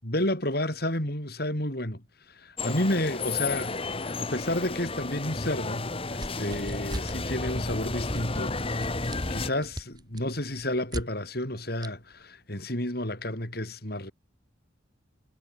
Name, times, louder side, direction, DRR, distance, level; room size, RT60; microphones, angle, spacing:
voice 1, 0.0-14.1, left 1 dB, 50° left, 6.6 m, -31 dB
sound 1, 2.6-9.5, left 3 dB, 30° left, 1.3 m, -32 dB
sound 2, 6.2-7.2 7.5-7.8 8.1-11.1 11.8-11.9, right 1 dB, 20° right, 1.9 m, -39 dB
head